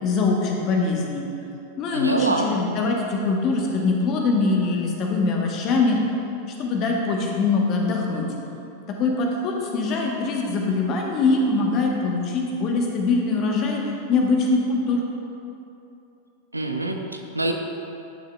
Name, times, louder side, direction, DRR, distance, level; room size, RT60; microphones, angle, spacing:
voice 1, 0.0-1.3 1.8-6.0 6.5-8.3 8.9-13.8 14.1-15.0, left 3 dB, 35° left, 0 dB, 1.1 m, -23 dB
voice 2, 1.9-2.5 16.5-17.5, right 2 dB, 85° right, 4 dB, 0.5 m, -25 dB
10.5 x 6.7 x 2.3 m, 2.8 s
figure-of-eight pair, 90°, 0 cm